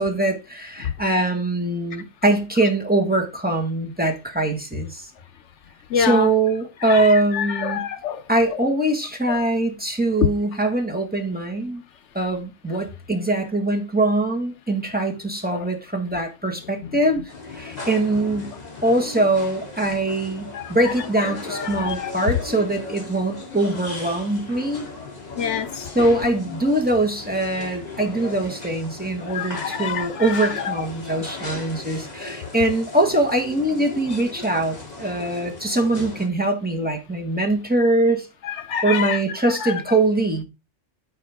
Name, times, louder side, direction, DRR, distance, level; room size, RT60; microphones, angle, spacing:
voice 1, 0.0-5.1 5.9-7.9 8.3-11.8 12.1-17.2 17.5-18.5 18.8-24.9 25.9-38.3 38.8-40.4, right 2 dB, 5° right, 1.6 m, -22 dB
voice 2, 5.9-6.3 6.9-8.2 8.5-8.6 9.3-9.4 15.5-15.7 16.8-16.9 17.7-17.8 20.5-20.7 21.6-22.1 25.4-25.9 29.3-30.7 38.4-39.2 39.6-39.8, left 7 dB, 70° left, 0.9 m, -27 dB
sound 1, 17.3-36.3, left 3 dB, 35° left, 2.0 m, -37 dB
13.5 x 4.5 x 3.5 m
omnidirectional pair, 1.3 m